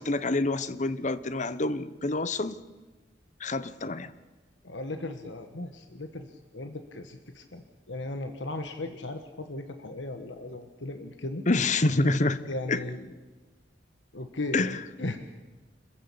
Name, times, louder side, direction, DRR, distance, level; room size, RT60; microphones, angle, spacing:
voice 1, 0.0-2.6 3.4-4.1 11.5-12.4 12.7-12.8 14.5-14.8, left 2 dB, 40° left, 15 dB, 1.0 m, -27 dB
voice 2, 4.6-11.4 12.2-13.0 14.1-15.2, left 2 dB, 90° left, 7 dB, 1.5 m, -37 dB
26.5 x 15.0 x 8.6 m, 1.2 s
head